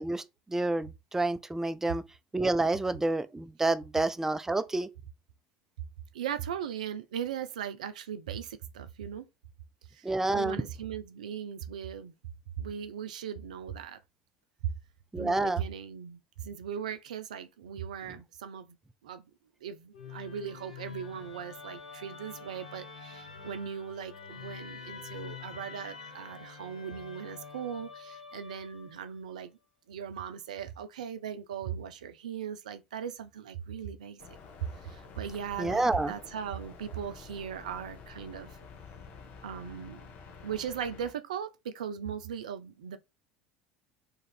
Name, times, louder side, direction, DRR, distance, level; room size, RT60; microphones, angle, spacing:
voice 1, 0.0-2.0 2.3-4.9 10.0-10.6 15.1-15.6 35.6-36.1, right 2 dB, 10° right, 0.4 m, -29 dB
voice 2, 6.1-9.3 9.9-12.1 12.6-14.0 14.6-14.7 15.2-18.8 19.0-19.3 19.6-29.6 29.9-34.2 34.6-38.6 39.4-40.1 40.4-43.0, right 8 dB, 75° right, 0.4 m, -38 dB
Musical instrument, 19.9-29.1, left 6 dB, 80° left, 0.7 m, -46 dB
sound 1, 34.2-41.1, left 5 dB, 50° left, 0.7 m, -49 dB
2.9 x 2.5 x 4.1 m
figure-of-eight pair, 70°, 4 cm